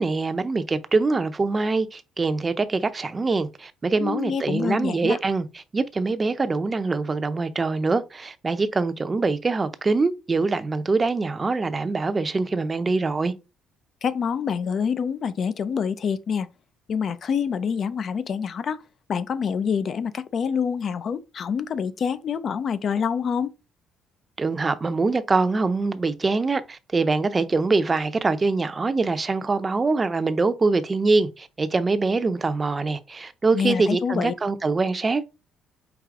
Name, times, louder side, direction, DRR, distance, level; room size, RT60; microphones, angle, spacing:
voice 1, 0.0-5.5 5.7-13.3 24.4-35.3, right 3 dB, 30° right, 0.6 m, -24 dB
voice 2, 4.0-5.2 14.0-16.5 16.9-18.8 19.1-23.5 33.5-34.3, left 7 dB, 50° left, 0.5 m, -26 dB
4.8 x 2.7 x 3.7 m
cardioid pair, 85°, 0 cm